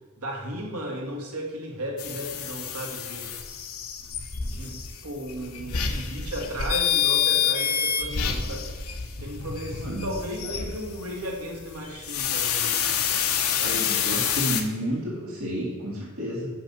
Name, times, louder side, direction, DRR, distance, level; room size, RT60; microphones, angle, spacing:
voice 1, 0.2-3.3 4.4-8.7 9.2-12.9 13.6-13.9, equal, 80° right, 0 dB, 1.9 m, -35 dB
sound 1, 2.0-14.6, left 8 dB, 75° left, 0.8 m, -28 dB
voice 2, 9.7-10.1 13.6-16.5, equal, 65° right, -5 dB, 2.3 m, -31 dB
6.0 x 5.6 x 7.0 m, 1.4 s
head